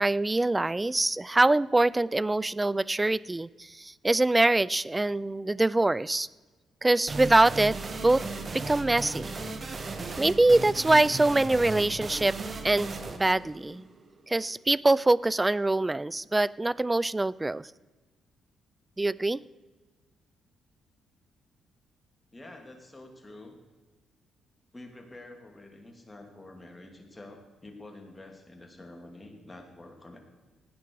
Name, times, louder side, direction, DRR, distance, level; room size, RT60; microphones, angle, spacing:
voice 1, 0.0-6.3 6.8-7.8 8.0-8.2 8.5-9.4 10.2-12.4 12.6-13.8 14.3-17.7 19.0-19.4, right 2 dB, 15° right, 21 dB, 0.3 m, -24 dB
sound 1, 7.1-14.5, right 3 dB, 35° right, 1.3 m, -36 dB
voice 2, 22.3-23.6 24.7-30.2, left 2 dB, 15° left, 2 dB, 2.7 m, -48 dB
17.0 x 9.5 x 4.7 m, 1.3 s
cardioid pair, 90°, 0 cm